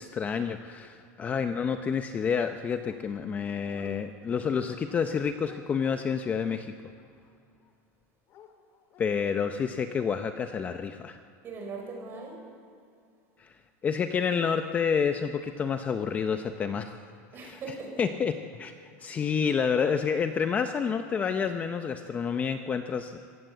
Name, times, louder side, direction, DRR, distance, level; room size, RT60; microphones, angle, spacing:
voice 1, 0.0-6.7 9.0-11.2 13.4-13.5 13.8-17.0 17.4-17.6 18.0-18.7 19.0-23.2, left 6 dB, 20° left, 8 dB, 0.6 m, -29 dB
Dog, 2.9-3.3 3.6-4.0 4.3-7.7 8.3-9.2, left 8 dB, 35° left, 1.9 m, -52 dB
voice 2, 11.4-12.4 17.3-18.1 19.2-19.4, right 3 dB, 30° right, 1 dB, 5.4 m, -40 dB
25.5 x 15.5 x 8.0 m, 2.3 s
supercardioid pair, 165°, 8 cm